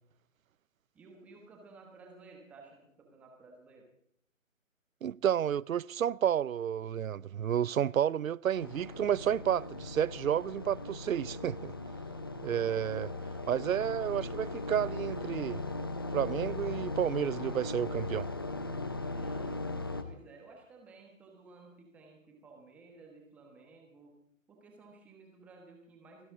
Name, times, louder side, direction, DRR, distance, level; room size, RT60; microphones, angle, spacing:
voice 1, 0.9-3.9 19.1-19.6 20.0-24.2 24.5-26.3, right 3 dB, 5° right, 1.1 m, -55 dB
voice 2, 5.0-11.7 12.4-13.1 13.5-15.6 16.1-18.3, right 9 dB, 80° right, 0.5 m, -31 dB
sound 1, 8.5-20.0, left 2 dB, 20° left, 0.6 m, -38 dB
29.5 x 9.9 x 3.7 m
figure-of-eight pair, 150°, 40 cm